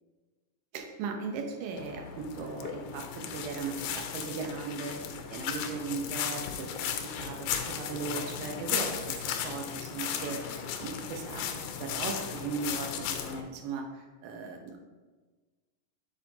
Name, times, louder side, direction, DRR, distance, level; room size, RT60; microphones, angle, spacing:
voice 1, 0.7-14.8, right 5 dB, 85° right, 3 dB, 2.5 m, -38 dB
sound 1, 1.8-13.4, left 8 dB, 85° left, 2.3 m, -36 dB
7.9 x 7.6 x 2.8 m, 1.3 s
omnidirectional pair, 3.7 m